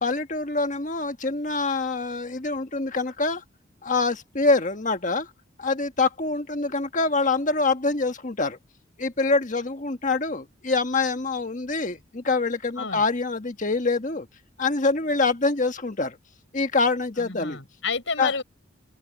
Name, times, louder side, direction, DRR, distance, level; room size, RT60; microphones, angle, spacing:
voice 1, 0.0-3.4 3.8-5.3 5.6-8.6 9.0-14.3 14.6-16.2 16.5-17.6 18.2-18.3, left 3 dB, 40° left, 1.6 m, -25 dB
voice 2, 17.2-18.4, left 4 dB, 80° left, 4.9 m, -30 dB
open air
head